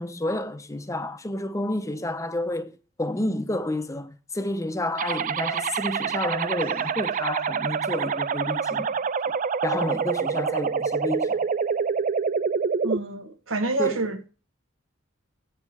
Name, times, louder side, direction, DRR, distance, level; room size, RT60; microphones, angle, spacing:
voice 1, 0.0-8.9 9.6-11.5 13.8-14.0, left 1 dB, 15° left, 0.6 m, -30 dB
sound 1, 5.0-13.0, right 6 dB, 40° right, 0.4 m, -26 dB
voice 2, 12.8-14.3, right 2 dB, 80° right, 1.2 m, -27 dB
8.0 x 4.6 x 7.1 m
head